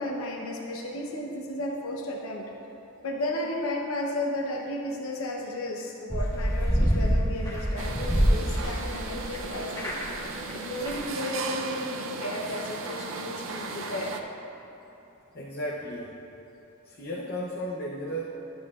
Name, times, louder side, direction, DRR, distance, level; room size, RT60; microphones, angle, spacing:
voice 1, 0.0-2.5 3.0-10.0 10.5-14.2, left 1 dB, 80° left, 0 dB, 0.8 m, -33 dB
sound 1, 6.1-9.4 9.7-10.2 10.5-10.6 10.8-10.9, equal, 15° left, 1.4 m, -26 dB
sound 2, 7.8-14.2, right 4 dB, 65° right, 0.6 m, -36 dB
voice 2, 15.3-16.2 16.8-18.3, equal, 45° left, -4 dB, 0.7 m, -34 dB
11.5 x 8.6 x 2.4 m, 3.0 s
head